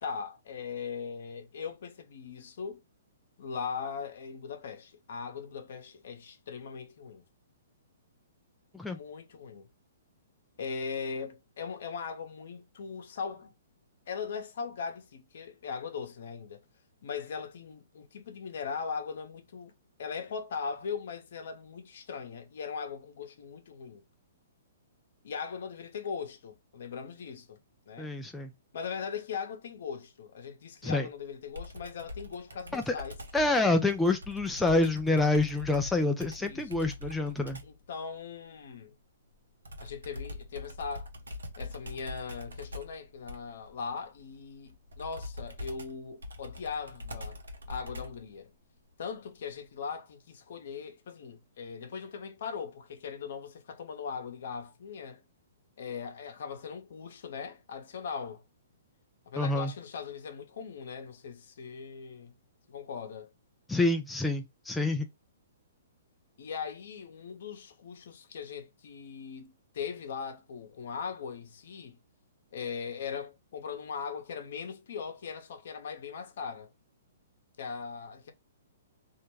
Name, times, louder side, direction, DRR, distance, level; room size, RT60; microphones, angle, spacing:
voice 1, 0.0-2.8 3.4-7.3 8.9-9.7 10.6-13.5 14.1-16.6 17.0-19.7 20.0-24.0 25.2-27.6 27.9-28.1 28.7-33.2 33.5-33.9 36.4-36.7 37.6-38.9 39.8-41.1 41.6-47.4 47.7-48.5 49.0-55.2 55.8-58.4 59.3-62.3 62.7-63.3 66.4-72.0 72.5-76.7 77.6-78.3, left 6 dB, 65° left, 0.7 m, -39 dB
voice 2, 28.0-28.5 30.8-31.1 32.7-32.9 33.3-37.6 59.4-59.7 63.7-65.1, left 2 dB, 5° left, 0.3 m, -27 dB
Computer keyboard, 31.6-37.8 39.6-48.3, left 2 dB, 90° right, 0.7 m, -43 dB
2.3 x 2.1 x 3.0 m
hypercardioid pair, 140°, 0 cm